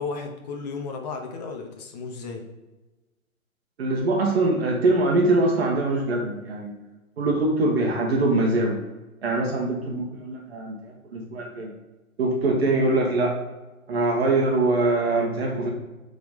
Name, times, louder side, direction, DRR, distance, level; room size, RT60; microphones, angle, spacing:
voice 1, 0.0-2.4, left 4 dB, 30° left, 2 dB, 1.1 m, -34 dB
voice 2, 3.8-6.7 7.2-8.8 9.2-11.7 12.2-13.4 13.9-15.7, right 2 dB, 45° right, 0 dB, 1.3 m, -23 dB
8.8 x 4.0 x 3.6 m, 1.1 s
figure-of-eight pair, 140°, 42 cm